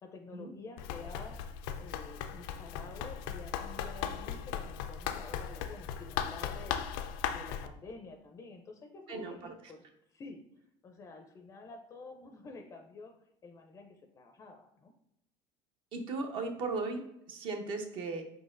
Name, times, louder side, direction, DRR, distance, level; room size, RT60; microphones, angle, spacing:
voice 1, 0.0-1.4 1.8-6.8 7.3-9.8 10.1-10.4 10.8-13.1 13.4-14.9, left 3 dB, 30° left, 5 dB, 0.4 m, -49 dB
Run, 0.8-7.7, left 9 dB, 85° left, 0.4 m, -38 dB
voice 2, 15.9-18.2, right 3 dB, 50° right, 4 dB, 0.7 m, -36 dB
4.6 x 3.9 x 2.5 m, 0.81 s
cardioid pair, 135°, 11 cm